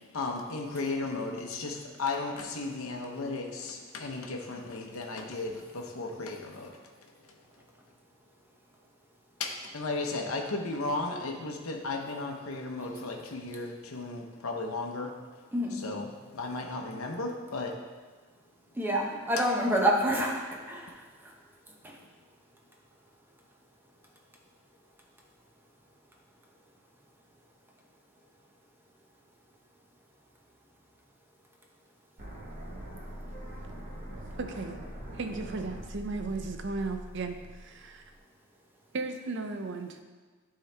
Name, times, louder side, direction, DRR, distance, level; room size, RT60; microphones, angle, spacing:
voice 1, 0.1-6.8 9.4-15.2 15.7-17.8, left 3 dB, 80° left, 2 dB, 0.8 m, -35 dB
voice 2, 18.7-21.3 21.8-22.0, equal, 10° right, -1 dB, 0.8 m, -28 dB
sound 1, 32.2-38.2, equal, 35° right, 1.0 m, -43 dB
voice 3, 34.4-34.8 35.1-38.1 38.9-40.0, right 3 dB, 55° right, 7 dB, 0.6 m, -35 dB
10.5 x 3.8 x 3.3 m, 1.4 s
head